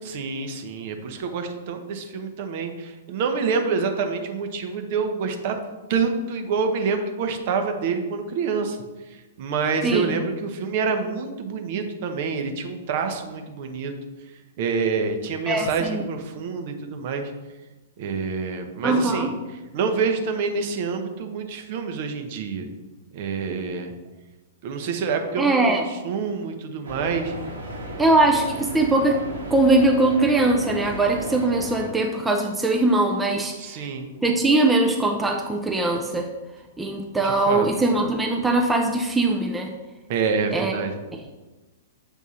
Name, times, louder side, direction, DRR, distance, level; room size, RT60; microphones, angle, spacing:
voice 1, 0.0-5.6 5.9-8.8 9.1-13.9 14.6-17.3 18.0-19.3 19.7-22.7 23.1-23.9 24.6-27.3 33.6-34.1 37.2-37.7 40.1-40.9, right 5 dB, 45° right, 6 dB, 0.8 m, -27 dB
voice 2, 9.8-10.2 15.5-16.0 18.8-19.3 25.4-25.9 28.0-29.2 29.5-33.6 34.2-36.3 36.8-39.7 40.5-40.7, right 2 dB, 5° right, 1 dB, 0.5 m, -21 dB
sound 1, 26.8-31.9, right 1 dB, 65° right, 1.3 m, -35 dB
7.3 x 3.5 x 4.2 m, 1.1 s
figure-of-eight pair, 110°, 0 cm